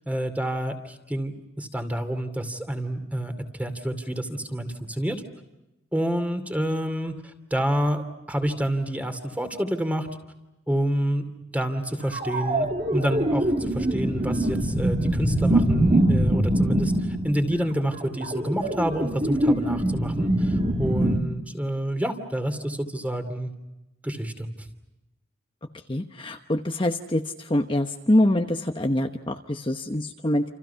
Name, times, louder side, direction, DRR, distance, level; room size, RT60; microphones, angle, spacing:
voice 1, 0.1-3.3 3.6-5.2 5.9-10.1 10.7-11.2 11.5-12.7 12.9-23.5 24.0-24.7, right 1 dB, 5° right, 8 dB, 2.7 m, -28 dB
sound 1, 12.1-21.2, right 1 dB, 35° right, 2.4 m, -23 dB
voice 2, 25.9-27.2 27.5-30.4, left 1 dB, 25° left, 4 dB, 1.0 m, -24 dB
29.0 x 28.5 x 5.8 m, 0.97 s
head